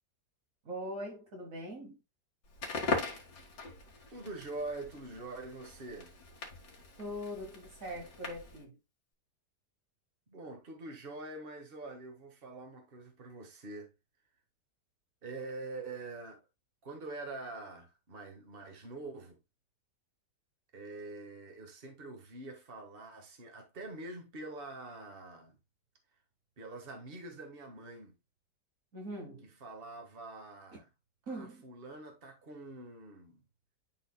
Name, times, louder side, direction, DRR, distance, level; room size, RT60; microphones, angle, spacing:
voice 1, 0.7-2.0 7.0-8.8 28.9-29.5 30.7-30.8 31.3-31.7, equal, 55° right, 1.7 m, -42 dB
Crackle, 2.5-8.6, left 3 dB, 75° left, 2.5 m, -40 dB
voice 2, 4.1-6.1 10.3-13.9 15.2-16.4 16.8-19.4 20.7-25.6 26.6-28.1 29.4-30.9 31.3-33.4, right 2 dB, 35° right, 1.7 m, -45 dB
11.5 x 4.1 x 2.3 m
omnidirectional pair, 1.8 m